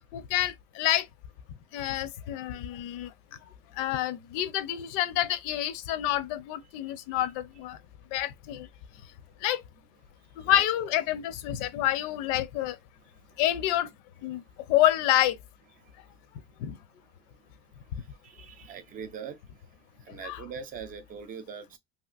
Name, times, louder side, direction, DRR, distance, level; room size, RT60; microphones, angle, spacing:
voice 1, 0.1-1.1 1.7-3.1 3.8-7.8 8.1-8.7 9.4-9.6 10.4-12.8 13.4-13.9 14.2-14.4 14.7-15.4 16.6-16.8 20.2-20.4, left 13 dB, 80° left, 0.6 m, -28 dB
voice 2, 10.4-10.9 13.3-13.4 15.8-15.9 18.2-19.4 20.0-21.8, right 7 dB, 25° right, 0.3 m, -42 dB
2.8 x 2.8 x 2.4 m
cardioid pair, 175°, 36 cm